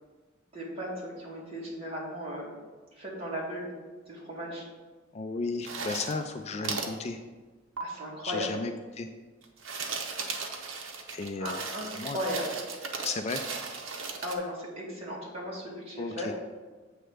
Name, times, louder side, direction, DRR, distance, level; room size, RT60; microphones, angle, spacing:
voice 1, 0.5-2.6 2.9-3.7 4.1-4.6 7.8-8.6 11.4-12.6 14.2-16.3, equal, 30° right, -5 dB, 2.2 m, -36 dB
voice 2, 5.1-7.2 8.2-9.1 11.1-11.6 12.0-12.2 13.0-13.4 16.0-16.3, left 3 dB, 35° left, 6 dB, 0.4 m, -34 dB
sound 1, 5.6-6.3 6.6-7.0 7.8-7.9 9.4-14.4, right 4 dB, 75° right, 0.9 m, -36 dB
7.7 x 3.3 x 6.4 m, 1.3 s
head